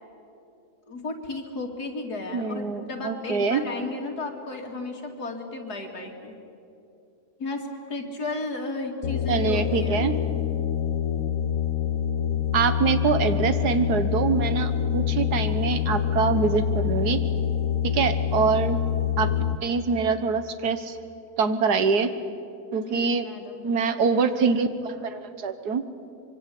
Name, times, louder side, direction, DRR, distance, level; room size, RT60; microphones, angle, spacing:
voice 1, 0.9-6.3 7.4-10.0 22.9-23.7, left 3 dB, 80° left, 2 dB, 3.1 m, -34 dB
voice 2, 2.3-3.6 9.3-10.1 12.5-17.2 17.8-18.8 19.2-19.3 19.6-21.0 21.4-22.2 22.7-23.3 23.6-25.8, right 5 dB, 85° right, 11 dB, 1.9 m, -24 dB
sound 1, 9.0-19.6, left 9 dB, 60° left, 1.3 m, -26 dB
25.0 x 23.5 x 8.5 m, 2.7 s
omnidirectional pair, 1.7 m